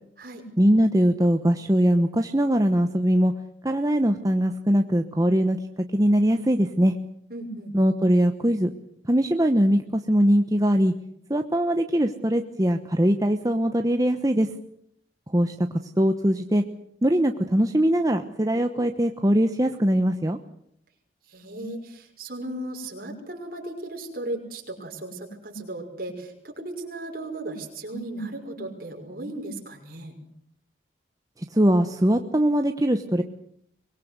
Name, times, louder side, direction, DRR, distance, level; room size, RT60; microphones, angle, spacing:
voice 1, 0.6-3.3 3.6-5.6 5.9-6.9 7.7-8.7 9.1-10.9 11.3-14.5 15.3-15.5 16.0-16.6 17.0-20.4 31.5-33.2, equal, 20° right, 6 dB, 1.0 m, -21 dB
voice 2, 7.3-7.7 21.3-30.2, right 1 dB, 50° right, 2 dB, 6.0 m, -36 dB
24.0 x 21.5 x 8.1 m, 0.71 s
head